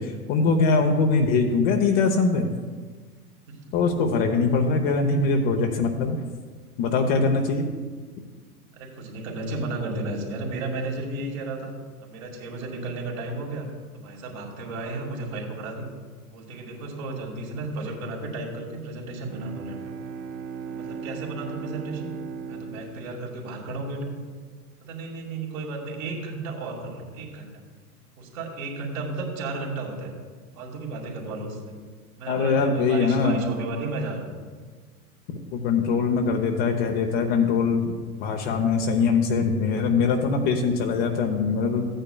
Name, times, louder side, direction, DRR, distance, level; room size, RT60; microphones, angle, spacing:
voice 1, 0.0-2.5 3.7-6.2 6.8-7.6 32.3-33.4 35.5-41.9, left 4 dB, 40° left, 3 dB, 0.9 m, -22 dB
voice 2, 8.8-11.7 12.0-13.7 13.9-15.9 16.3-19.8 20.7-22.1 22.5-24.2 24.8-27.5 28.2-30.1 30.6-31.7 32.2-34.3, right 2 dB, 60° right, -1 dB, 2.5 m, -33 dB
Bowed string instrument, 19.2-24.2, right 6 dB, 25° right, 0.6 m, -38 dB
15.0 x 9.0 x 2.3 m, 1.5 s
figure-of-eight pair, 95°, 46 cm